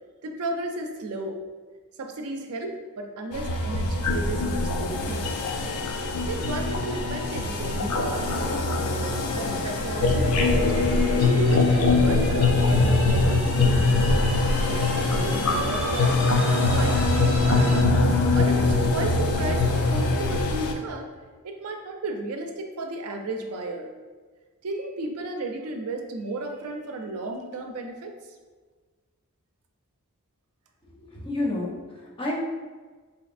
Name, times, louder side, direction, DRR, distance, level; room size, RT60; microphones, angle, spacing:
voice 1, 0.2-1.4 2.0-5.3 5.8-5.9 6.3-10.7 11.2-14.4 14.8-21.1 21.4-23.9 24.6-28.2, right 2 dB, 80° right, 4 dB, 0.4 m, -34 dB
sound 1, 3.3-20.7, left 3 dB, 80° left, 0.4 m, -23 dB
sound 2, 6.6-17.8, right 1 dB, 25° right, 0.5 m, -36 dB
voice 2, 31.0-32.4, left 2 dB, 25° left, -3 dB, 0.6 m, -30 dB
4.1 x 2.8 x 2.4 m, 1.4 s
head